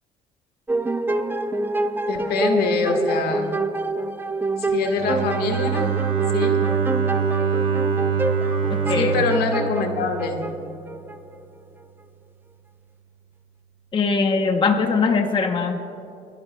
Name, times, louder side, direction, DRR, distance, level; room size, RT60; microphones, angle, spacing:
sound 1, 0.7-11.2, right 2 dB, 10° right, 0.5 m, -27 dB
voice 1, 2.1-3.5 4.6-5.9 6.3-6.6 8.9-10.4, left 4 dB, 70° left, 4 dB, 1.5 m, -24 dB
Bowed string instrument, 5.0-10.9, right 6 dB, 55° right, 1.7 m, -24 dB
voice 2, 8.7-9.1 13.9-15.8, left 4 dB, 30° left, 5 dB, 0.8 m, -21 dB
28.0 x 11.0 x 2.3 m, 2.8 s
cardioid pair, 110°, 17 cm